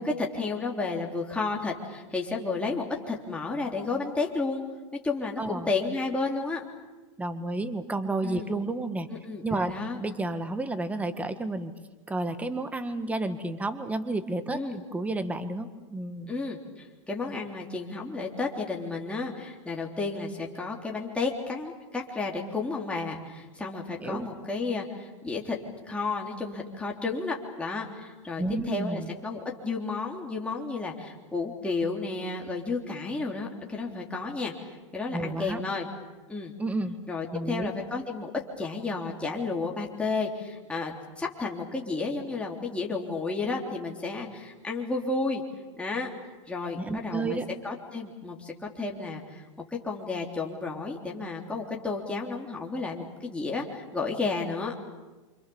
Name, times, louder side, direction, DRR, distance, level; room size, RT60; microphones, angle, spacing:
voice 1, 0.0-4.6 4.9-6.6 8.2-8.5 9.1-10.0 14.5-14.8 16.3-16.6 17.1-25.6 25.9-34.5 34.9-35.9 36.3-36.5 37.1-38.3 38.6-45.4 45.8-46.1 46.5-49.4 49.7-54.7, left 3 dB, 5° left, -1 dB, 3.5 m, -32 dB
voice 2, 5.4-5.7 7.2-9.1 9.4-11.7 12.1-16.3 24.0-24.3 28.4-29.1 35.1-35.6 36.6-37.0 37.3-37.7 46.8-47.5, right 2 dB, 10° right, 9 dB, 1.7 m, -31 dB
28.5 x 26.5 x 7.2 m, 1.2 s
hypercardioid pair, 125°, 16 cm